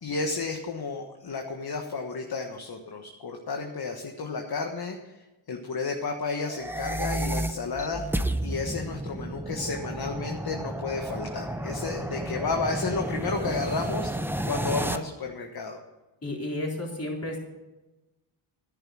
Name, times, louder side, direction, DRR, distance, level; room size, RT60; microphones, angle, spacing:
voice 1, 0.0-5.2 5.5-8.0 8.4-14.1 14.5-15.8, left 4 dB, 45° left, 3 dB, 1.4 m, -32 dB
sound 1, 6.5-15.0, right 1 dB, 5° right, 0.6 m, -32 dB
voice 2, 16.2-17.4, left 1 dB, 30° left, -1 dB, 3.7 m, -32 dB
10.5 x 10.0 x 6.3 m, 1.1 s
cardioid pair, 80°, 50 cm